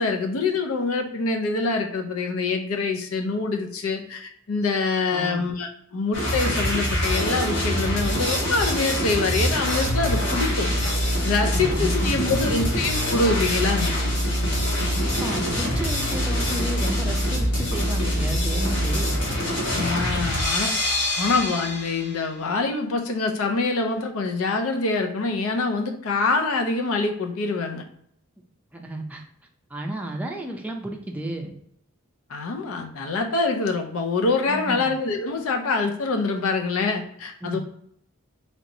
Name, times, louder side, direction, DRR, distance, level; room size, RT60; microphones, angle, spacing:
voice 1, 0.0-10.7 11.2-14.0 19.7-20.7 21.2-27.8 32.3-37.6, left 3 dB, 90° left, 4 dB, 0.5 m, -25 dB
sound 1, 6.1-22.1, equal, 55° left, 1.3 m, -24 dB
voice 2, 11.5-12.7 14.9-19.2 28.7-29.2 29.7-31.5 34.5-34.9 37.4-37.6, right 1 dB, 5° right, 1 dB, 0.4 m, -32 dB
3.2 x 2.9 x 2.6 m, 0.70 s
head